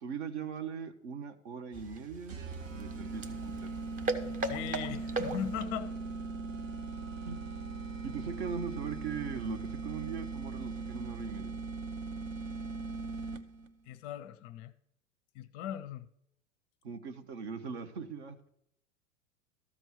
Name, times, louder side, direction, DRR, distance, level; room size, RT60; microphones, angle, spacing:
voice 1, 0.0-2.4 2.7-3.7 7.2-7.4 8.0-11.5 16.8-18.4, right 6 dB, 55° right, 1.2 m, -40 dB
sound 1, 1.7-5.8, right 2 dB, 20° right, 0.9 m, -38 dB
sound 2, 2.3-13.7, right 4 dB, 80° right, 0.8 m, -40 dB
voice 2, 4.2-5.9 13.9-14.7 15.3-16.1, left 10 dB, 35° left, 0.5 m, -39 dB
13.5 x 4.5 x 6.7 m
figure-of-eight pair, 95°, 39 cm